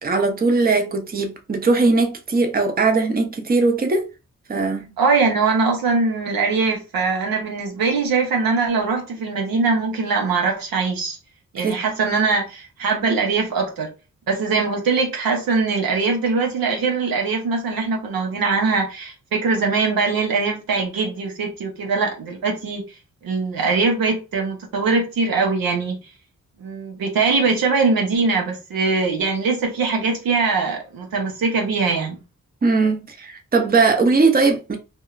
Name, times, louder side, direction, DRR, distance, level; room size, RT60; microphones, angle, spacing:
voice 1, 0.0-4.1 4.5-4.9 11.6-11.8 32.6-34.8, right 3 dB, 25° right, 0.6 m, -19 dB
voice 2, 5.0-11.2 11.5-13.9 14.3-22.8 23.2-26.0 26.6-32.2, right 4 dB, 85° right, 0.8 m, -22 dB
2.7 x 2.2 x 2.3 m
supercardioid pair, 45°, 35 cm